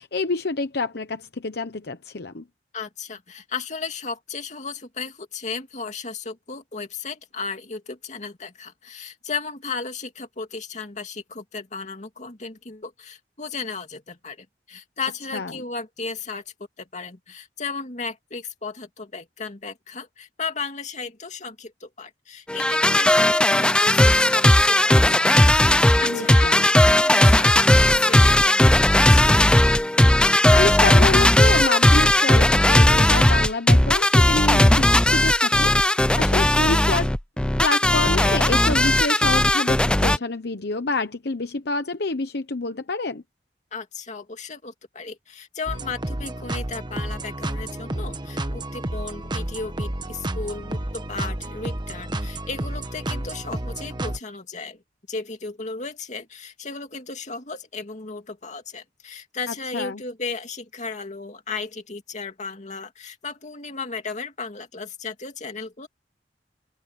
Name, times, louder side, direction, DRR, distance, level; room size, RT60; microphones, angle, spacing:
voice 1, 0.0-2.4 15.3-15.5 26.0-26.7 30.2-37.1 37.6-43.2 59.5-60.0, left 3 dB, 65° left, 1.0 m, -28 dB
voice 2, 2.7-16.4 16.8-25.3 25.7-29.4 43.7-54.8 55.1-65.9, left 4 dB, 45° left, 2.4 m, -35 dB
sound 1, 22.5-40.2, left 1 dB, 5° left, 0.4 m, -17 dB
sound 2, 45.7-54.2, right 1 dB, 25° right, 1.3 m, -31 dB
open air
head